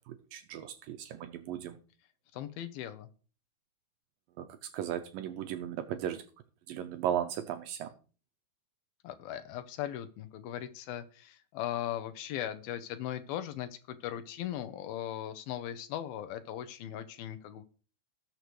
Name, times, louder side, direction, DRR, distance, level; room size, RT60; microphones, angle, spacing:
voice 1, 0.1-1.8 4.4-6.2 6.7-7.9, right 10 dB, 80° right, 8 dB, 2.2 m, -36 dB
voice 2, 2.3-3.1 9.0-17.7, left 11 dB, 80° left, 10 dB, 2.5 m, -38 dB
19.0 x 6.6 x 3.1 m, 0.37 s
omnidirectional pair, 4.5 m